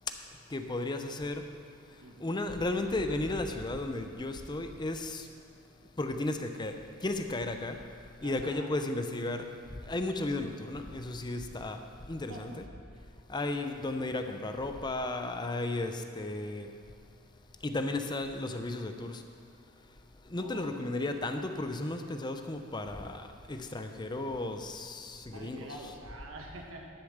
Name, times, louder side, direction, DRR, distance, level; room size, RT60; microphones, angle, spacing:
voice 1, 0.5-1.5 2.2-5.3 6.0-7.8 8.2-9.5 9.8-11.8 12.1-12.6 13.3-16.7 17.6-19.2 20.2-25.7, left 2 dB, 20° left, 6 dB, 0.6 m, -34 dB
voice 2, 2.0-2.5 8.2-8.7 12.3-12.4 20.4-21.1 25.3-26.9, right 1 dB, 75° right, 1 dB, 1.2 m, -47 dB
11.0 x 6.9 x 6.5 m, 2.3 s
head